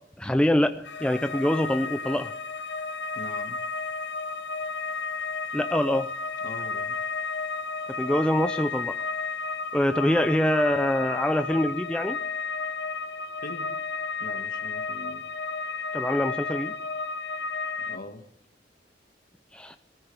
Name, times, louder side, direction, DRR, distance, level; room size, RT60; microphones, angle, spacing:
voice 1, 0.2-2.3 5.5-6.1 8.0-9.0 9.7-12.2 15.9-16.7 19.5-19.8, left 1 dB, 5° left, 8 dB, 0.5 m, -24 dB
sound 1, 0.8-18.0, left 4 dB, 80° left, 0.8 m, -32 dB
voice 2, 3.1-3.6 6.4-7.0 13.4-13.7 14.2-15.2 17.8-18.3, left 2 dB, 55° left, 7 dB, 1.6 m, -41 dB
21.5 x 14.0 x 3.4 m, 0.77 s
head